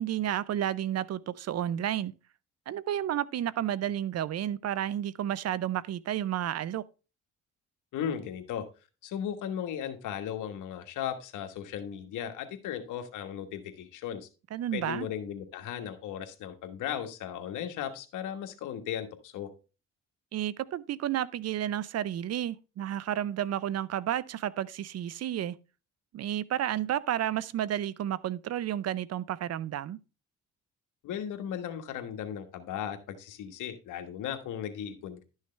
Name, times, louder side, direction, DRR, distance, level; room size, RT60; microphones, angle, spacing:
voice 1, 0.0-2.1 2.7-6.8 14.5-15.1 20.3-25.6 26.1-30.0, right 11 dB, 55° right, 0.6 m, -31 dB
voice 2, 7.9-8.6 9.0-14.3 14.7-19.5 31.0-35.2, left 9 dB, 85° left, 1.4 m, -36 dB
11.5 x 6.4 x 3.2 m
cardioid pair, 90°, 30 cm